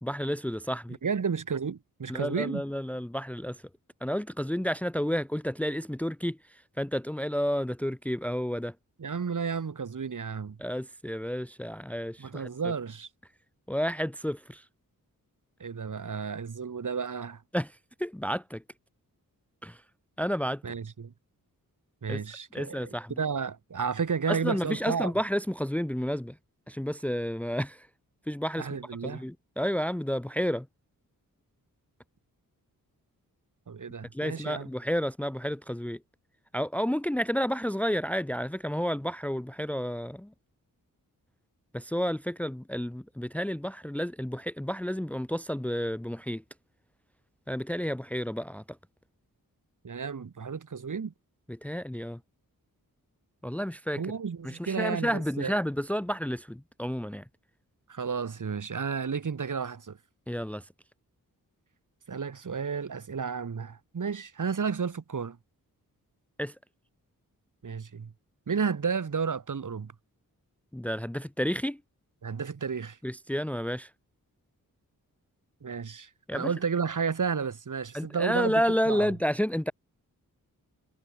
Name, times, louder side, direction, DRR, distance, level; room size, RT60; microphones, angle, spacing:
voice 1, 0.0-1.0 2.1-3.6 4.0-8.7 10.6-12.7 13.7-14.7 17.5-18.6 19.6-19.8 20.2-20.6 22.1-22.2 22.5-23.2 24.3-26.4 26.7-27.9 28.3-28.7 29.0-30.7 34.1-36.0 36.5-40.3 41.7-46.4 47.5-48.6 51.5-52.2 53.4-54.0 54.4-57.2 60.3-60.7 66.4-66.5 70.7-71.8 73.0-73.9 76.3-76.5 77.9-79.7, equal, 5° left, 1.0 m, -31 dB
voice 2, 1.0-2.6 9.0-10.6 12.2-13.1 15.6-17.4 20.6-21.1 22.0-22.9 23.2-25.1 28.6-29.2 33.7-34.7 49.8-51.1 54.0-55.5 57.9-60.0 62.1-65.4 67.6-68.1 68.5-69.9 72.2-73.0 75.6-78.5 78.8-79.1, right 6 dB, 60° right, 7.9 m, -32 dB
wide cardioid pair, 145°, 35 cm